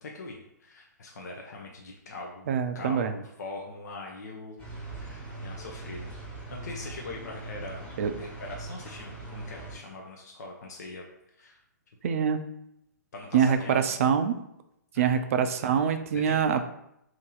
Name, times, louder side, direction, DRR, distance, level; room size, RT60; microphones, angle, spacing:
voice 1, 0.0-2.5 2.7-4.6 4.9-6.1 6.5-11.0 11.4-11.6 12.0-12.2 13.1-14.0 14.9-15.2 16.1-16.4, left 2 dB, 60° left, 0 dB, 0.6 m, -42 dB
voice 2, 2.5-3.1 8.0-8.1 12.0-12.4 13.3-14.4 15.0-16.7, right 7 dB, 45° right, 9 dB, 0.4 m, -24 dB
sound 1, 4.6-9.8, right 2 dB, 10° left, 1.2 m, -41 dB
2.8 x 2.7 x 3.8 m, 0.78 s
figure-of-eight pair, 125°, 10 cm